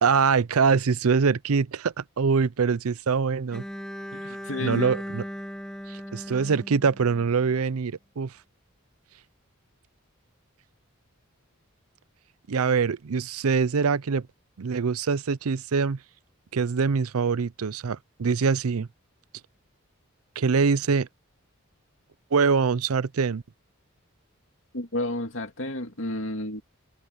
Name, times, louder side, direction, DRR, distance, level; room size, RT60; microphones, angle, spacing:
voice 1, 0.0-3.6 4.6-5.2 5.9-8.3 12.5-14.3 14.6-16.0 16.5-18.9 20.4-21.1 22.3-23.4, right 5 dB, 85° right, 0.5 m, -24 dB
Bowed string instrument, 3.5-7.6, equal, 5° left, 1.9 m, -38 dB
voice 2, 4.1-4.9 24.7-26.6, left 1 dB, 65° left, 2.5 m, -31 dB
open air
head